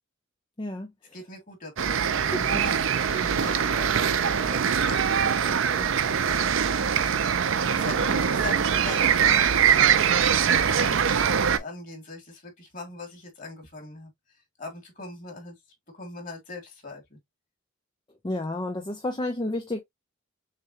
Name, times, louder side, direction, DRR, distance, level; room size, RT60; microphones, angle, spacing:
voice 1, 0.6-0.9 2.3-2.7 18.2-19.8, left 1 dB, 20° left, 0.6 m, -30 dB
voice 2, 1.1-6.6 7.7-10.1 10.7-15.6 15.9-17.2, left 3 dB, 40° left, 2.2 m, -41 dB
sound 1, 1.8-11.6, right 7 dB, 65° right, 0.5 m, -23 dB
6.6 x 2.2 x 2.8 m
head